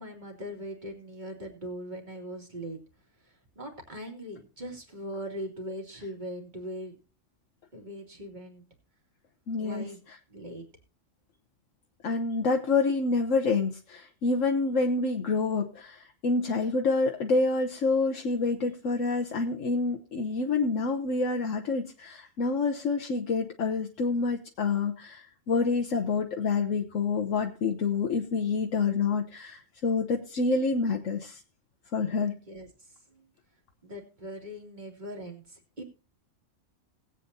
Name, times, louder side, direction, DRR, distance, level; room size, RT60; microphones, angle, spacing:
voice 1, 0.0-2.8 3.2-7.0 7.7-8.6 9.6-10.6 32.5-33.3 33.8-35.8, equal, 35° right, 2 dB, 2.7 m, -40 dB
voice 2, 9.5-9.9 12.0-31.4 31.9-32.3, left 4 dB, 75° left, 3 dB, 1.3 m, -27 dB
19.5 x 8.4 x 2.7 m, 0.34 s
omnidirectional pair, 1.3 m